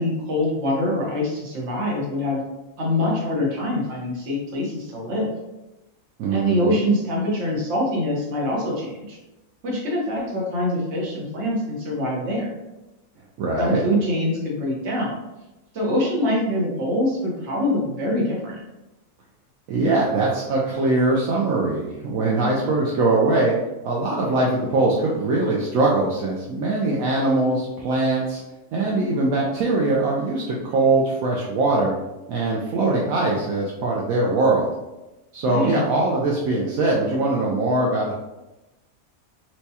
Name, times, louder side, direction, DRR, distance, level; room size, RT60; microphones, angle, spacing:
voice 1, 0.0-2.4 2.8-5.3 6.3-9.2 9.6-12.5 13.6-15.2 15.7-18.6 35.5-35.8, left 1 dB, 55° right, -3 dB, 1.2 m, -24 dB
voice 2, 6.2-6.7 13.4-13.8 19.7-23.5 23.8-28.4 28.7-31.9 32.3-34.7 35.3-38.1, right 2 dB, 75° right, -4 dB, 1.0 m, -22 dB
4.5 x 2.2 x 2.7 m, 1.0 s
omnidirectional pair, 1.5 m